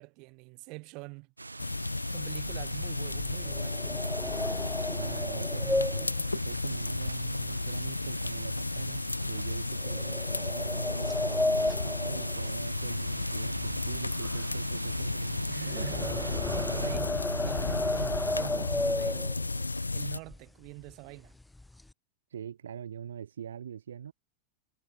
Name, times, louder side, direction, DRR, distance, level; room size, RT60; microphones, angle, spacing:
voice 1, 0.0-1.3 2.1-3.9 15.5-19.4 19.9-21.4, right 29 dB, 45° right, 1.0 m, -45 dB
sound 1, 1.4-17.0, right 3 dB, 80° right, 1.1 m, -43 dB
sound 2, 1.6-20.2, left 3 dB, 80° left, 0.5 m, -33 dB
sound 3, 3.1-7.7 8.0-8.4 8.9-9.0 9.8-13.1 13.4-19.7 20.3-20.4 20.7-20.9 21.3-21.9, left 2 dB, 5° left, 0.4 m, -34 dB
voice 2, 5.0-15.5 22.3-24.1, right 9 dB, 65° right, 0.7 m, -43 dB
figure-of-eight pair, 90°, 0 cm